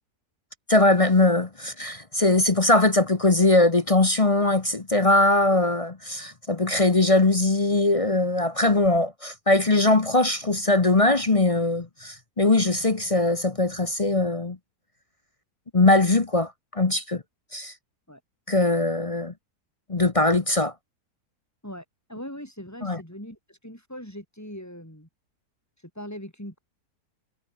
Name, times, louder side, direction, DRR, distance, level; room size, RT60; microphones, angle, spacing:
voice 1, 0.7-14.6 15.7-17.2 17.5-17.7 18.5-19.3 19.9-20.7 22.8-23.0, left 2 dB, 25° left, 0.9 m, -21 dB
voice 2, 21.6-25.1 25.8-26.6, equal, 10° left, 7.3 m, -40 dB
omnidirectional pair, 1.7 m